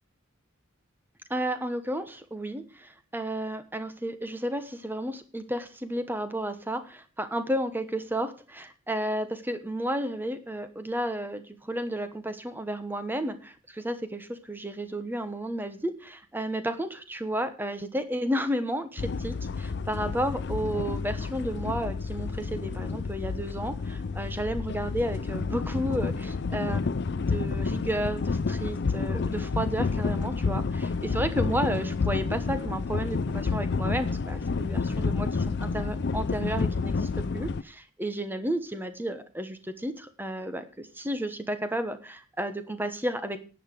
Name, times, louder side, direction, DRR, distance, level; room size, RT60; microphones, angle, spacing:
voice 1, 1.3-43.4, right 1 dB, 10° right, 10 dB, 1.1 m, -32 dB
sound 1, 19.0-37.6, left 4 dB, 50° left, 0.5 m, -30 dB
11.0 x 8.0 x 6.6 m, 0.36 s
head